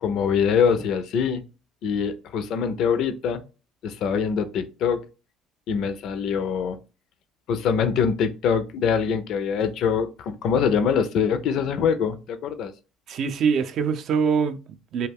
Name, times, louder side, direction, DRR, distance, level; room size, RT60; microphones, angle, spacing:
voice 1, 0.0-1.4 1.8-3.4 3.8-5.0 5.7-6.8 7.5-12.7, left 6 dB, 65° left, 0.4 m, -24 dB
voice 2, 13.1-15.1, right 6 dB, 55° right, 0.3 m, -24 dB
2.2 x 2.2 x 3.4 m
supercardioid pair, 100°, 0 cm